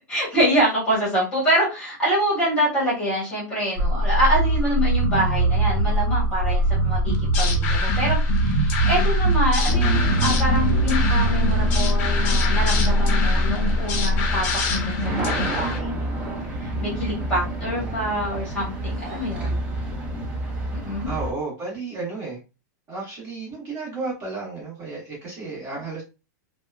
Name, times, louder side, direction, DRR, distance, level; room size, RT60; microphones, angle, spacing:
voice 1, 0.1-16.0 16.5-19.6 20.7-21.1, right 1 dB, 10° left, -7 dB, 1.4 m, -25 dB
sound 1, 3.8-14.6, equal, 80° right, 0.7 m, -22 dB
sound 2, 7.1-15.8, left 4 dB, 40° left, 0.6 m, -27 dB
sound 3, 9.7-21.3, right 2 dB, 10° right, 0.4 m, -28 dB
voice 2, 17.4-18.0 20.6-20.7 21.0-22.4 22.9-26.0, right 3 dB, 30° right, -5 dB, 1.3 m, -33 dB
2.8 x 2.2 x 2.3 m, 0.28 s
supercardioid pair, 170°, 10 cm